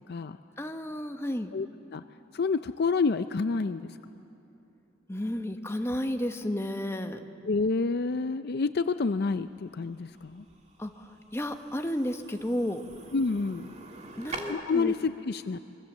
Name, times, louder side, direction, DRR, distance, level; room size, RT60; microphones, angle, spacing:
voice 1, 0.0-0.4 1.5-1.7 1.9-2.0 2.3-4.0 7.4-10.5 13.1-13.7 14.5-15.6, left 4 dB, 55° left, 11 dB, 0.5 m, -28 dB
voice 2, 0.6-1.5 5.1-7.2 10.8-12.8 14.2-14.9, left 1 dB, 15° left, 5 dB, 1.1 m, -32 dB
sound 1, 9.0-14.4, right 3 dB, 35° right, 2.2 m, -46 dB
26.0 x 23.5 x 7.3 m, 2.7 s
head